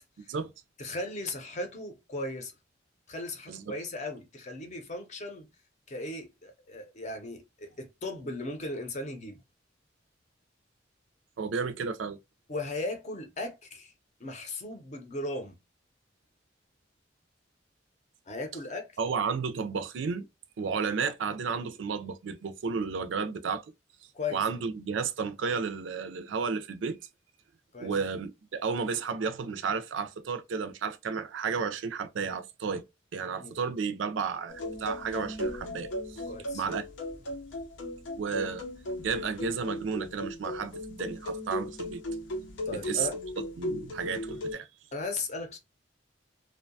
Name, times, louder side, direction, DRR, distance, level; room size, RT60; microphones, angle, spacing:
voice 1, 0.8-2.5 3.1-5.5 5.9-9.4 12.5-13.9 14.2-15.6 18.3-18.9 24.1-24.4 27.7-27.9 33.4-33.5 36.3-36.6 42.7-43.2 44.9-45.6, left 2 dB, 40° left, 0.6 m, -37 dB
voice 2, 11.4-12.2 19.0-20.3 20.6-23.7 24.3-27.0 27.8-32.8 33.1-36.2 36.5-36.9 38.2-38.6 39.0-42.0 42.7-43.1 43.6-44.7, right 5 dB, 80° right, 0.4 m, -32 dB
sound 1, 34.5-44.5, left 1 dB, 85° left, 0.7 m, -37 dB
2.6 x 2.2 x 2.6 m
head